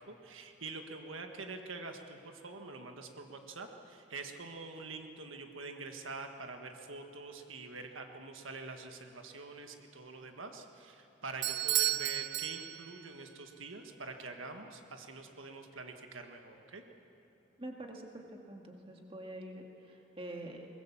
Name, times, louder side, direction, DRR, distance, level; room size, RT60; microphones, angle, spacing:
voice 1, 0.0-16.8, right 3 dB, 90° right, 4 dB, 1.6 m, -45 dB
Bell / Doorbell, 11.4-13.1, right 14 dB, 55° right, 0.4 m, -33 dB
voice 2, 17.6-20.7, right 1 dB, 30° right, 2 dB, 1.9 m, -46 dB
22.5 x 20.0 x 7.3 m, 3.0 s
head